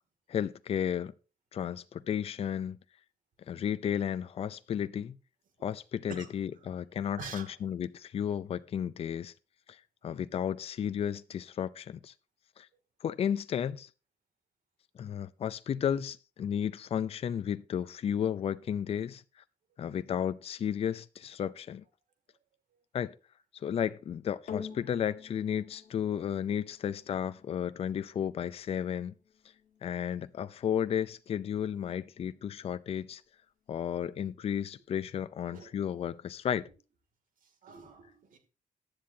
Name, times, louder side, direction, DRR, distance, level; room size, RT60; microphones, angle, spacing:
voice 1, 0.3-1.1 1.5-2.8 3.5-5.2 5.6-9.3 9.7-12.1 12.6-12.7 13.0-13.9 15.0-19.2 19.8-21.8 22.9-23.1 23.5-29.1 29.8-33.2 33.7-36.7, left 9 dB, 45° left, 0.5 m, -33 dB
voice 2, 6.1-6.7 7.2-7.6 22.3-22.4 22.7-22.8 24.7-24.8 35.5-35.7 37.4-38.4, right 5 dB, 75° right, 2.5 m, -47 dB
sound 1, 24.5-33.0 33.8-33.9, left 7 dB, 70° left, 1.6 m, -50 dB
15.0 x 10.5 x 2.8 m
wide cardioid pair, 175°, 14 cm